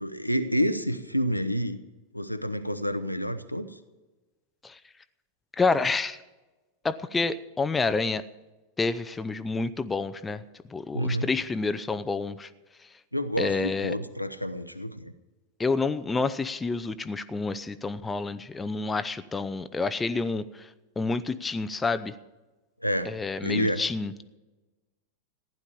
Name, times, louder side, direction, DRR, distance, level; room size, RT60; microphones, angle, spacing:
voice 1, 0.0-1.8 2.1-3.8 10.9-11.3 13.1-15.1 22.8-23.1 23.4-23.8, equal, 90° left, 9 dB, 0.8 m, -28 dB
voice 2, 5.6-6.2 6.8-8.2 8.8-10.4 10.7-12.5 13.4-14.0 15.6-20.7 21.0-22.1 23.1-24.1, left 4 dB, 15° left, 12 dB, 0.6 m, -28 dB
15.0 x 10.5 x 7.1 m, 1.1 s
figure-of-eight pair, 90°, 0 cm